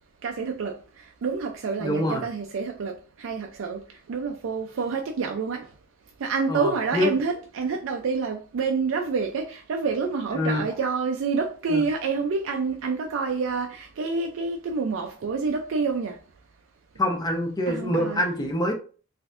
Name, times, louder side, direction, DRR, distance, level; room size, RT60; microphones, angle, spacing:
voice 1, 0.2-0.8 1.2-5.7 6.2-16.2 17.7-18.2, right 4 dB, 70° right, 0.4 m, -28 dB
voice 2, 1.8-2.2 6.5-7.1 10.3-10.6 11.7-11.8 17.0-18.7, left 1 dB, 20° left, 0.7 m, -25 dB
3.9 x 2.6 x 2.4 m
head